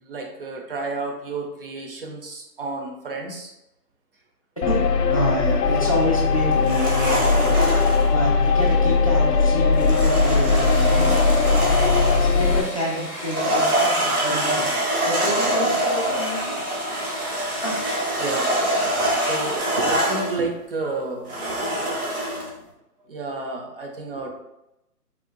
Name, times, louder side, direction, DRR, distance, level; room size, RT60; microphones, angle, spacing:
voice 1, 0.0-3.5 18.2-21.7 23.1-24.3, right 3 dB, 35° right, 1 dB, 0.6 m, -31 dB
sound 1, 4.6-12.6, left 4 dB, 90° left, 0.6 m, -19 dB
voice 2, 5.1-11.2 11.4-11.7 12.2-16.8 17.6-17.8, equal, 25° left, -5 dB, 0.5 m, -29 dB
sound 2, 6.6-8.1 9.8-12.4 13.2-20.4 21.3-22.5, right 1 dB, 65° right, 1.5 m, -24 dB
sound 3, 10.5-19.6, left 1 dB, ahead, 1.0 m, -37 dB
4.1 x 3.8 x 2.2 m, 0.90 s
figure-of-eight pair, 150°, 48 cm